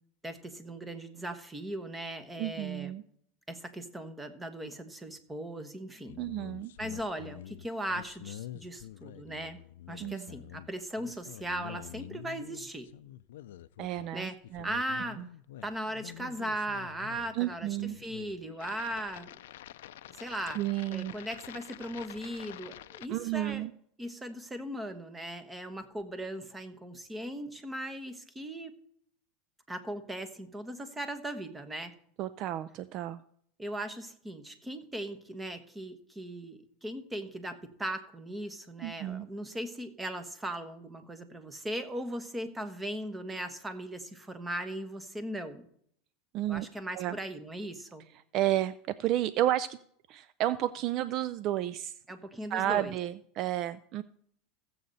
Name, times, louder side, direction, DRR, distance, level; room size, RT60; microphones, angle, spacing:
voice 1, 0.2-2.9 3.5-6.2 6.8-9.6 9.9-12.9 14.1-14.4 14.6-15.2 15.6-19.3 20.1-20.6 20.9-23.6 24.0-28.7 29.7-31.9 33.6-45.7 46.5-48.0 52.1-52.9, right 1 dB, 10° right, 9 dB, 1.2 m, -38 dB
voice 2, 2.4-3.0 6.2-6.7 10.0-10.3 13.8-14.7 15.2-15.3 17.3-18.0 20.6-21.1 23.1-23.7 32.2-33.2 38.8-39.3 46.3-46.7 46.9-47.2 48.3-49.8 50.1-51.9 52.5-54.0, right 13 dB, 45° right, 15 dB, 0.4 m, -31 dB
sound 1, 6.1-23.1, left 12 dB, 85° left, 0.4 m, -47 dB
15.5 x 7.7 x 4.1 m, 0.65 s
supercardioid pair, 125°, 0 cm